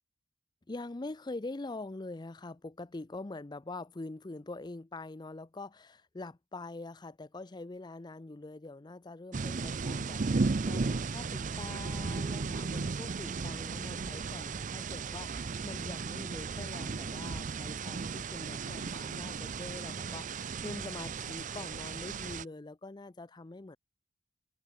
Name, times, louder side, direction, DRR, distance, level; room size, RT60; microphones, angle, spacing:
voice 1, 0.7-23.8, left 2 dB, 25° left, 0.5 m, -44 dB
sound 1, 9.3-22.4, right 4 dB, 40° right, 0.5 m, -35 dB
head